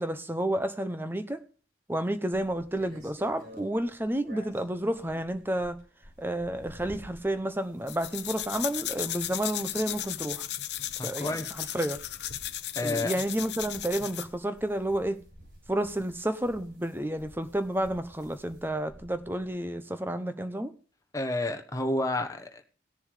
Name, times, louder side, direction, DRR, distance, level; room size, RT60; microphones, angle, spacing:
voice 1, 0.0-1.4 1.9-5.8 6.2-10.5 11.0-12.0 12.8-15.2 15.7-20.7, right 1 dB, 10° right, 10 dB, 0.9 m, -31 dB
sound 1, 2.3-19.5, equal, 65° right, 7.6 m, -53 dB
sound 2, 7.9-14.3, left 13 dB, 65° left, 0.8 m, -35 dB
voice 2, 11.0-11.5 12.7-13.1 21.1-22.6, left 2 dB, 20° left, 5 dB, 1.2 m, -30 dB
18.5 x 7.0 x 5.0 m, 0.40 s
head